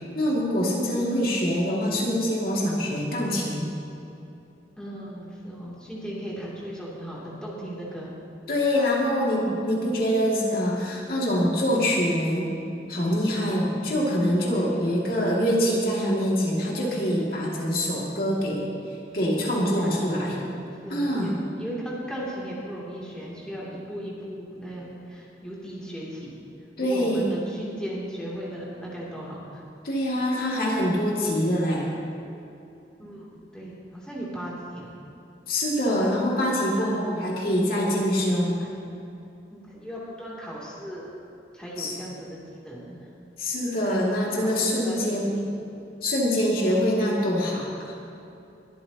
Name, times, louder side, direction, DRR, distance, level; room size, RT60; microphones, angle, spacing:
voice 1, 0.2-3.7 8.5-12.5 12.9-18.7 19.1-20.4 20.9-21.3 26.8-27.2 29.8-31.9 35.5-38.6 41.8-41.9 43.4-45.4 46.0-47.7, equal, 55° left, -4 dB, 2.5 m, -24 dB
voice 2, 0.8-1.5 4.8-8.1 9.4-9.8 14.6-15.1 19.8-20.5 20.8-26.3 26.8-29.6 33.0-33.2 33.5-34.9 36.8-37.1 38.6-38.7 39.5-41.1 41.5-43.0 44.2-45.5, equal, 5° left, -7 dB, 3.0 m, -37 dB
22.5 x 13.0 x 3.0 m, 2.8 s
head